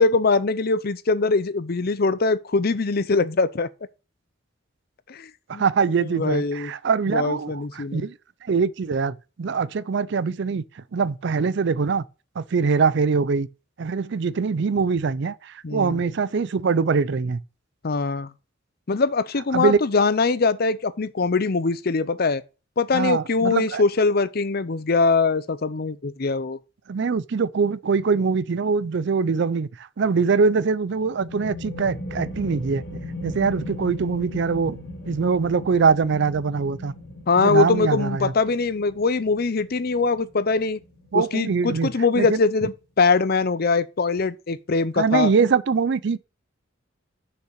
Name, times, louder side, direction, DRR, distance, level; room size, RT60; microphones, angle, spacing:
voice 1, 0.0-3.7 5.1-5.6 6.0-6.7 7.1-8.1 15.6-16.0 17.8-18.3 18.9-22.4 22.8-26.6 37.3-40.8 41.1-45.3, left 4 dB, 50° left, 0.6 m, -22 dB
voice 2, 5.5-8.1 8.5-10.6 10.9-12.0 12.4-13.5 13.8-17.4 19.5-19.8 22.9-23.8 26.9-29.7 30.0-32.8 33.2-34.8 35.1-36.9 37.4-38.3 41.1-41.9 42.2-42.4 45.0-46.2, right 5 dB, 60° right, 0.4 m, -23 dB
sound 1, 30.9-42.3, left 1 dB, 80° left, 2.8 m, -38 dB
6.7 x 5.6 x 6.4 m
head